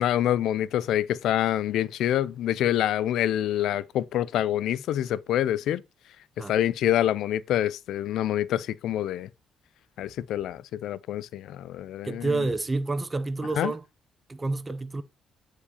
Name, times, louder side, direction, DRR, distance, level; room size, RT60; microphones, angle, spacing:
voice 1, 0.0-5.8 6.5-9.3 10.0-12.4 13.5-13.7, left 12 dB, 80° left, 0.3 m, -26 dB
voice 2, 12.0-13.8 14.3-15.0, right 3 dB, 20° right, 0.6 m, -29 dB
8.4 x 4.7 x 2.8 m
cardioid pair, 90°, 0 cm